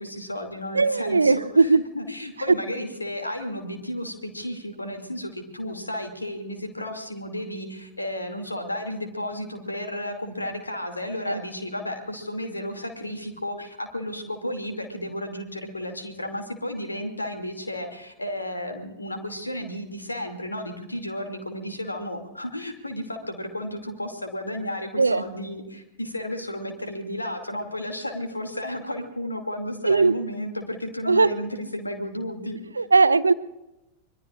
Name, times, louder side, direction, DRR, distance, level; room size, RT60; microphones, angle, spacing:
voice 1, 0.0-1.7 1.9-32.6, left 1 dB, 80° left, 4 dB, 2.5 m, -33 dB
voice 2, 0.7-1.8 2.5-2.6 11.3-11.4 25.0-25.2 29.8-30.1 31.1-31.4 32.8-33.3, right 4 dB, 80° right, 16 dB, 0.6 m, -19 dB
25.5 x 22.0 x 2.5 m, 0.97 s
figure-of-eight pair, 90°, 0 cm